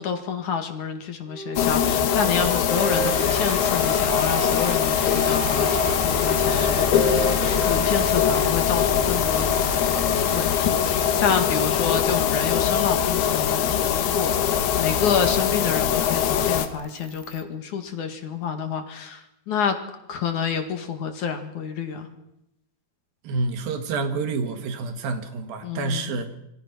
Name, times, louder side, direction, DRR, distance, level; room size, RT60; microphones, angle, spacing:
voice 1, 0.0-9.5 9.9-19.8 20.1-22.1 25.6-26.2, left 6 dB, 55° left, 7 dB, 3.1 m, -28 dB
Wind instrument woodwind instrument, 1.3-8.7, right 6 dB, 45° right, 2.6 m, -33 dB
sound 1, 1.6-16.7, left 9 dB, 85° left, 3.4 m, -22 dB
sound 2, 2.7-17.4, equal, 15° right, 1.4 m, -35 dB
voice 2, 23.2-26.4, right 3 dB, 70° right, 8 dB, 3.5 m, -28 dB
27.0 x 23.5 x 6.1 m, 0.84 s
omnidirectional pair, 4.4 m